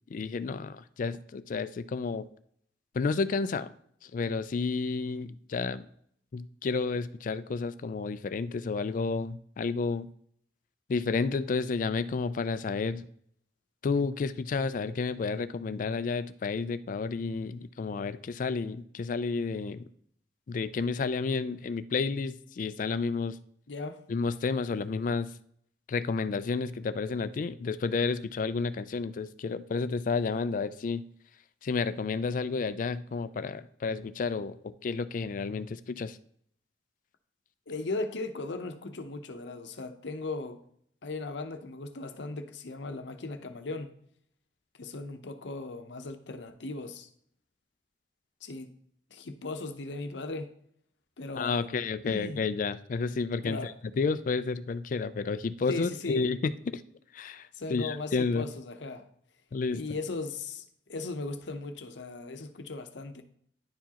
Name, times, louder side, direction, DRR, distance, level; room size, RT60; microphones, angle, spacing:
voice 1, 0.1-2.3 2.9-3.7 4.0-5.9 6.3-10.1 10.9-13.1 13.8-19.9 20.5-23.4 24.1-25.3 25.9-31.0 31.6-36.2 51.4-56.8 57.1-58.5 59.5-59.8, left 4 dB, 45° left, 14 dB, 0.3 m, -31 dB
voice 2, 23.7-24.0 37.7-40.6 41.0-43.9 44.8-47.1 48.4-48.7 49.1-50.5 51.2-51.8 52.0-52.4 53.4-53.7 55.7-56.3 57.5-59.1 59.7-63.2, left 3 dB, 85° left, 8 dB, 0.7 m, -37 dB
10.5 x 4.6 x 2.9 m, 0.66 s
head